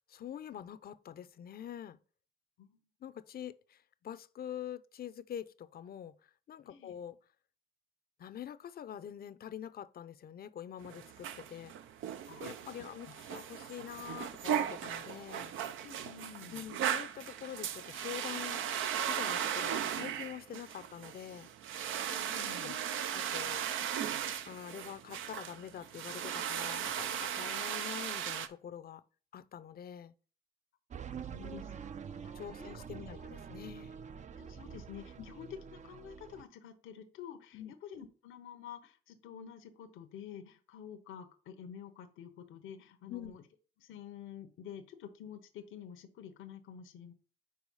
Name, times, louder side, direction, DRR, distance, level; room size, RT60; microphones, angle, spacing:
voice 1, 0.1-2.0 3.0-7.2 8.2-11.7 12.4-15.5 16.5-18.6 19.1-21.5 22.6-22.7 23.1-23.6 24.5-29.0 29.3-30.1 31.4-31.6 32.3-34.0 35.2-35.3 37.5-37.7 43.1-43.4, left 9 dB, 50° left, 0.6 m, -45 dB
voice 2, 6.7-7.0 12.3-12.5 13.3-13.4 15.8-16.6 22.0-22.8 31.3-31.7 32.1-32.8 33.2-33.3 34.4-43.4 43.8-47.1, left 8 dB, 85° left, 0.9 m, -49 dB
sound 1, 10.8-28.5, right 9 dB, 80° right, 0.6 m, -37 dB
Sci-fi Retro, 30.9-36.4, right 7 dB, 35° right, 0.4 m, -46 dB
4.8 x 4.5 x 5.5 m
cardioid pair, 90°, 20 cm